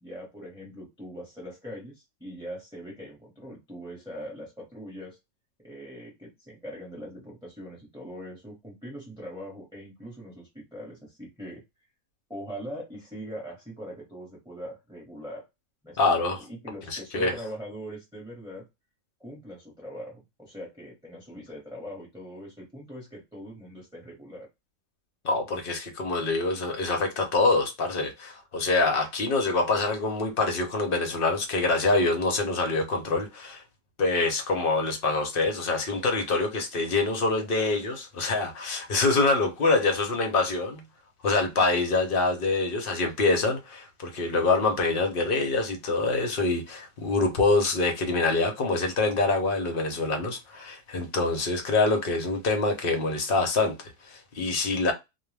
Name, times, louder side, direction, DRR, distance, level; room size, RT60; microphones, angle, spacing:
voice 1, 0.0-5.2 5.6-11.6 12.3-15.4 15.8-18.6 19.2-24.5, equal, 5° right, 0.8 m, -41 dB
voice 2, 16.0-16.4 16.9-17.3 25.2-33.6 34.0-40.8 41.2-54.9, left 3 dB, 50° left, 0.7 m, -25 dB
2.4 x 2.3 x 3.2 m
omnidirectional pair, 1.6 m